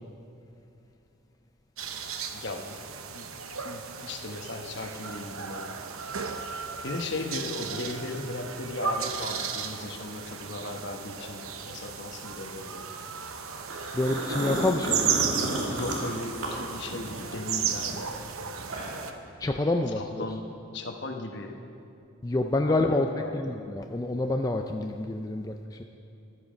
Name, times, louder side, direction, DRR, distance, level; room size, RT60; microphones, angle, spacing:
sound 1, 1.8-19.1, right 6 dB, 80° right, 0.8 m, -35 dB
voice 1, 2.3-2.8 3.1-3.4 3.6-5.7 6.8-12.9 15.7-18.1 19.9-21.6 22.7-23.6, left 2 dB, 55° left, 4 dB, 1.1 m, -37 dB
sound 2, 13.7-17.3 17.6-19.1, right 1 dB, 60° right, 2.3 m, -32 dB
voice 2, 13.9-15.1 19.4-20.2 22.2-23.1 23.3-25.8, left 2 dB, 15° left, 3 dB, 0.4 m, -27 dB
14.0 x 12.0 x 5.1 m, 2.7 s
head